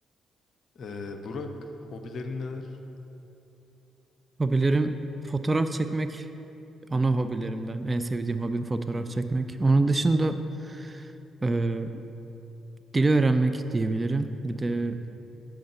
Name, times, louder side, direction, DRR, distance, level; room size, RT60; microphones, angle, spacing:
voice 1, 0.7-2.8 8.9-9.2 14.7-15.0, left 3 dB, 50° left, 6 dB, 0.6 m, -37 dB
voice 2, 4.4-4.9 5.2-6.3 6.9-10.4 10.6-11.1 11.4-12.0 12.9-15.0, right 2 dB, 25° right, 9 dB, 0.3 m, -25 dB
7.3 x 4.5 x 5.5 m, 2.9 s
figure-of-eight pair, 40°, 0 cm